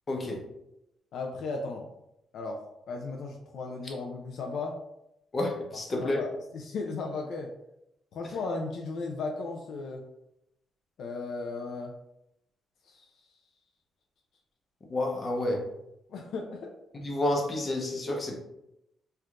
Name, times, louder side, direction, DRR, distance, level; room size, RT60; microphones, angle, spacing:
voice 1, 0.1-0.4 5.3-6.2 14.9-15.6 16.9-18.4, left 1 dB, 30° left, 1 dB, 0.8 m, -29 dB
voice 2, 1.1-1.9 2.3-2.6 2.9-4.8 6.0-7.5 8.1-10.0 11.0-11.9 12.9-13.1 16.1-16.7, left 3 dB, 70° left, 1 dB, 0.4 m, -35 dB
4.4 x 2.4 x 2.4 m, 0.84 s
cardioid pair, 115°, 0 cm